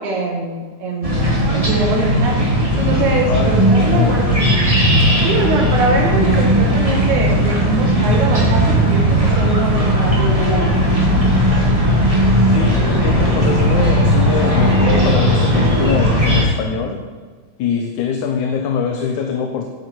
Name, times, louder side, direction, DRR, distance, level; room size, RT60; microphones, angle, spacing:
voice 1, 0.0-2.4 2.7-4.3 5.2-11.3, right 2 dB, 70° right, 0 dB, 3.4 m, -23 dB
sound 1, 1.0-16.4, equal, 10° right, 2.8 m, -16 dB
voice 2, 3.3-4.3 12.5-17.0 17.6-19.7, left 6 dB, 80° left, 3 dB, 2.4 m, -23 dB
17.0 x 9.7 x 4.7 m, 1.5 s
omnidirectional pair, 3.5 m